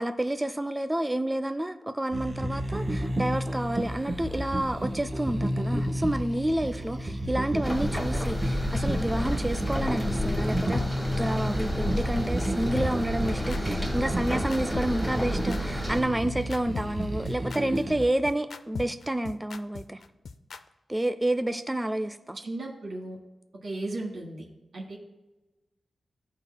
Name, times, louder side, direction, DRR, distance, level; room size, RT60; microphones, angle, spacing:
voice 1, 0.0-20.0 20.9-22.4, right 1 dB, 10° right, 9 dB, 0.3 m, -29 dB
sound 1, 2.1-18.0, equal, 30° right, 1.1 m, -31 dB
sound 2, 7.6-16.0, equal, 10° left, 1.3 m, -31 dB
sound 3, 8.8-8.9 9.2-9.4 9.7-9.8 10.3-10.4 10.7-10.9 11.2-11.4 11.7-11.8 12.3-12.4 12.7-20.6, left 5 dB, 75° left, 0.4 m, -38 dB
voice 2, 22.4-23.2 23.6-24.4 24.7-25.0, right 2 dB, 70° right, -1 dB, 1.5 m, -35 dB
15.5 x 5.3 x 2.2 m, 1.1 s
wide cardioid pair, 130°, 0 cm